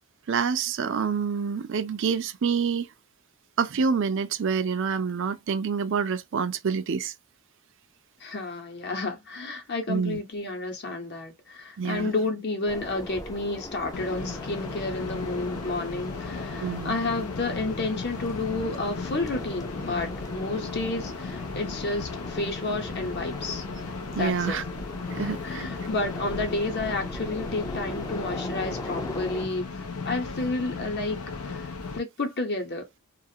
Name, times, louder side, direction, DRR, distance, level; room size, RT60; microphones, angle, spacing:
voice 1, 0.3-2.9 3.6-7.1 9.9-10.2 11.8-12.1 16.6-17.0 24.1-24.6 25.1-25.6, right 6 dB, 55° right, 0.4 m, -27 dB
voice 2, 8.2-23.6 24.2-24.6 25.1-31.6 31.9-32.8, left 2 dB, 50° left, 0.9 m, -31 dB
sound 1, 12.7-29.5, left 1 dB, 15° left, 0.4 m, -40 dB
sound 2, 13.9-32.0, left 4 dB, 85° left, 0.6 m, -36 dB
2.4 x 2.4 x 2.7 m
head